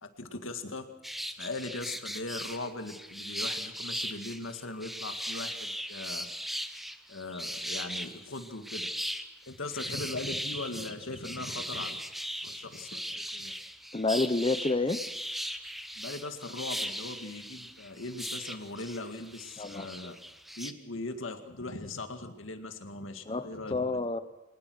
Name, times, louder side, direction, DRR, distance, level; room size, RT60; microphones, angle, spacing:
voice 1, 0.0-0.9 1.4-6.3 7.1-8.9 9.5-12.0 12.4-13.5 16.0-20.2 20.6-24.0, left 2 dB, 90° left, 7 dB, 2.0 m, -39 dB
sound 1, 1.0-20.7, equal, ahead, 0.9 m, -38 dB
voice 2, 13.9-15.0 19.6-20.1 23.3-24.2, left 3 dB, 25° left, 10 dB, 0.7 m, -29 dB
23.5 x 20.0 x 6.3 m, 1.0 s
head